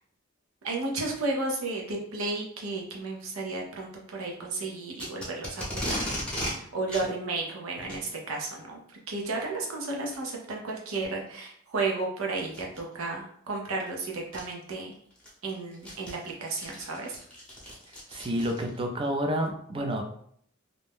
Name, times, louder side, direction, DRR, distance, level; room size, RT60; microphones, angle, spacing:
voice 1, 0.6-6.1 6.5-8.8 9.1-14.9 15.4-17.2, right 3 dB, 85° right, -1 dB, 0.6 m, -33 dB
Packing tape duct tape, 5.0-6.5 6.9-7.1 7.8-8.0 9.2-9.4 10.1-10.2 10.9-11.0 12.5-12.8 13.9-14.0 14.3-14.4 14.9-18.8, equal, 5° left, 0.8 m, -36 dB
voice 2, 18.1-20.0, equal, 25° right, 3 dB, 0.4 m, -29 dB
2.5 x 2.1 x 3.4 m, 0.65 s
head